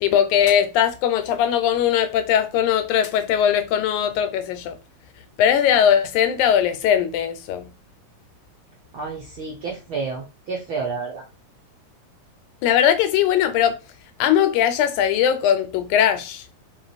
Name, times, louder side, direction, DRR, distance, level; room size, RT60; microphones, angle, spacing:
voice 1, 0.0-4.8 5.4-7.7 12.6-13.8 14.2-16.5, left 9 dB, 85° left, 2.1 m, -20 dB
voice 2, 8.9-11.2, right 4 dB, 75° right, 1.1 m, -30 dB
5.0 x 2.6 x 4.0 m
omnidirectional pair, 3.4 m